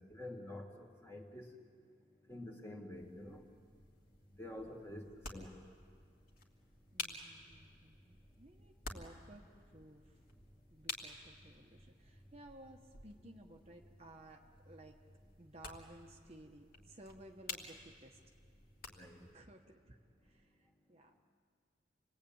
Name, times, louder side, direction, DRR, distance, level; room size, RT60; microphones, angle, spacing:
voice 1, 0.0-1.5 2.3-3.4 4.3-5.6 18.9-19.2, left 1 dB, 15° left, 1 dB, 2.2 m, -48 dB
sound 1, 2.9-19.3, left 3 dB, 50° left, 2.8 m, -52 dB
voice 2, 6.9-10.2 10.7-15.0 15.4-18.2 19.2-21.2, right 1 dB, 30° right, 2 dB, 1.3 m, -57 dB
28.5 x 20.0 x 8.9 m, 2.2 s
head